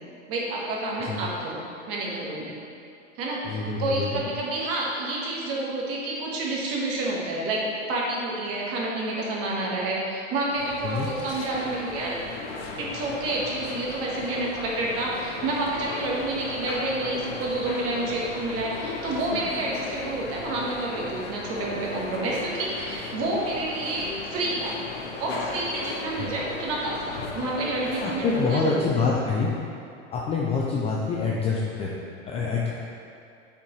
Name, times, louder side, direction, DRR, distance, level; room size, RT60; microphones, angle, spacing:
voice 1, 0.3-2.6 3.1-12.2 12.8-24.9 25.2-29.1, right 2 dB, 40° right, -3 dB, 1.4 m, -29 dB
voice 2, 3.4-4.2 10.8-11.1 26.2-26.3 28.0-29.5 30.1-31.9 32.3-32.7, left 4 dB, 20° left, -4 dB, 0.3 m, -26 dB
sound 1, 10.5-28.6, left 3 dB, 65° left, 1.0 m, -36 dB
8.5 x 4.4 x 3.1 m, 2.5 s
supercardioid pair, 130°, 37 cm